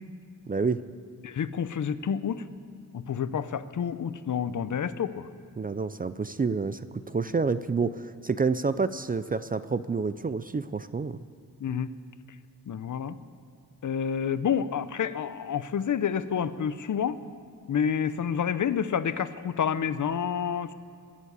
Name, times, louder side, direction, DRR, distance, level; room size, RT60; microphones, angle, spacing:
voice 1, 0.5-0.8 5.6-11.2, right 4 dB, 25° right, 13 dB, 0.4 m, -28 dB
voice 2, 1.2-2.5 2.9-5.3 11.6-11.9 12.7-13.2 13.8-17.2 17.7-20.7, left 7 dB, 60° left, 14 dB, 0.6 m, -29 dB
21.5 x 7.3 x 8.2 m, 2.4 s
wide cardioid pair, 115°, 34 cm